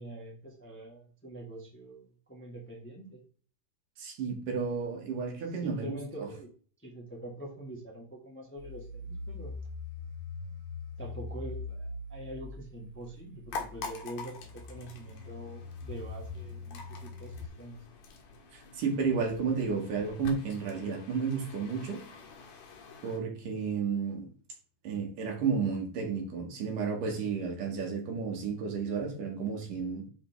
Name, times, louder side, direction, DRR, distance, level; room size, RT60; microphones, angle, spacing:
voice 1, 0.0-3.2 5.6-6.5 6.8-9.5 11.0-17.8, right 1 dB, 5° left, 1.4 m, -44 dB
voice 2, 4.0-6.3 18.5-22.0 23.0-24.3 24.8-30.1, right 5 dB, 85° right, 3.5 m, -32 dB
sound 1, 8.6-17.5, left 3 dB, 55° right, 2.0 m, -42 dB
sound 2, 13.5-23.2, left 4 dB, 80° left, 3.2 m, -46 dB
8.8 x 4.8 x 3.6 m
omnidirectional pair, 3.7 m